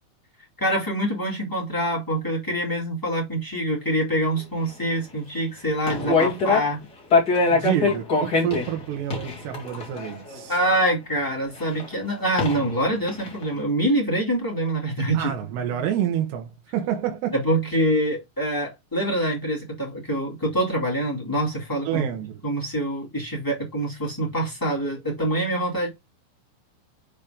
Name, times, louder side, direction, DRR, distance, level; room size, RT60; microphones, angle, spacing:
voice 1, 0.6-6.8 7.9-8.0 10.5-15.3 17.3-22.1 22.4-25.9, right 1 dB, 10° left, 1.0 m, -25 dB
sound 1, 5.8-6.8 7.1-10.7 11.8-11.9 12.4-12.8 13.1-13.4, left 3 dB, 35° left, 1.8 m, -23 dB
voice 2, 7.5-10.5 15.1-17.3 21.9-22.4, right 10 dB, 70° right, 3.0 m, -28 dB
7.3 x 4.2 x 5.1 m
omnidirectional pair, 5.6 m